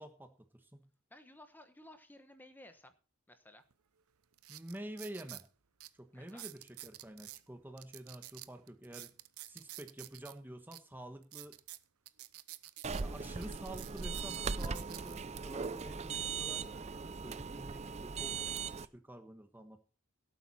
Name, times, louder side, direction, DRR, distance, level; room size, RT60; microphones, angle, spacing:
voice 1, 0.0-0.9 4.5-5.5 5.9-9.1 9.4-11.6 13.0-19.8, right 1 dB, 10° right, 6 dB, 1.3 m, -49 dB
voice 2, 1.1-2.9 3.3-3.6 6.1-6.4, left 1 dB, 10° left, 8 dB, 1.1 m, -56 dB
sound 1, 3.7-3.8 4.3-5.5 5.8-5.9 6.3-7.4 7.8-10.3 10.7-10.8 11.2-13.0 13.4-15.2 15.8-16.1, right 16 dB, 80° right, 0.8 m, -49 dB
sound 2, 12.8-18.9, right 5 dB, 30° right, 0.5 m, -39 dB
17.5 x 8.5 x 4.3 m, 0.37 s
head